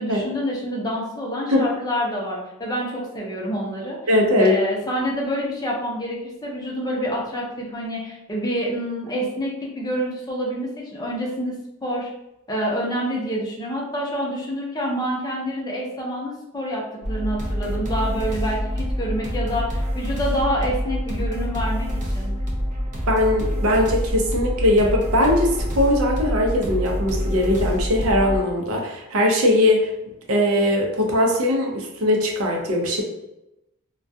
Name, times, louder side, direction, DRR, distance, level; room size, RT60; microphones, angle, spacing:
voice 1, 0.0-4.1 4.4-11.6 11.8-12.1 12.5-22.3, equal, 20° left, -3 dB, 0.5 m, -27 dB
voice 2, 4.1-4.5 23.1-29.9 30.3-33.0, left 1 dB, 85° right, 1 dB, 0.6 m, -20 dB
sound 1, 17.0-28.4, equal, 35° right, 0.5 m, -26 dB
2.2 x 2.2 x 2.6 m, 0.91 s
head